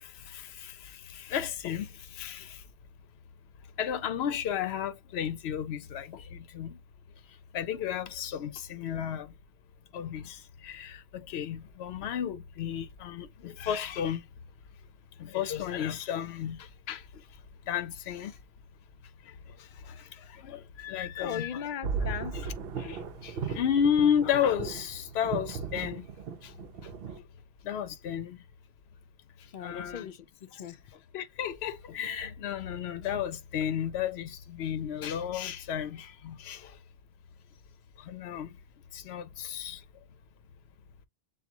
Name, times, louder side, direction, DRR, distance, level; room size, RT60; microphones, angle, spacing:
voice 1, 0.3-1.9 2.1-2.6 3.8-6.8 7.5-9.3 9.9-11.0 11.3-14.2 15.2-17.0 17.7-18.3 19.9-20.0 20.3-21.5 22.8-26.1 26.4-26.5 27.6-28.4 29.6-30.1 31.1-36.7 38.1-38.5 38.9-39.8, left 9 dB, 80° left, 0.8 m, -32 dB
voice 2, 21.2-22.4 29.5-30.8, left 8 dB, 60° left, 0.6 m, -38 dB
sound 1, 21.8-27.2, right 6 dB, 70° right, 0.7 m, -36 dB
7.0 x 2.4 x 2.6 m
omnidirectional pair, 1.1 m